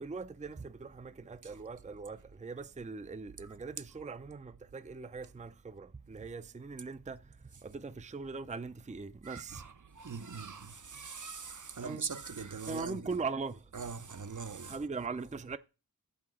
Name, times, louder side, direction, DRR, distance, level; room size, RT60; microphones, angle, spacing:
voice 1, 0.0-9.7 11.8-12.1 12.7-13.7 14.6-15.6, right 4 dB, 20° right, 0.5 m, -41 dB
voice 2, 9.2-13.0 13.7-14.8, right 5 dB, 60° right, 0.7 m, -42 dB
7.5 x 5.8 x 6.1 m
wide cardioid pair, 45°, 36 cm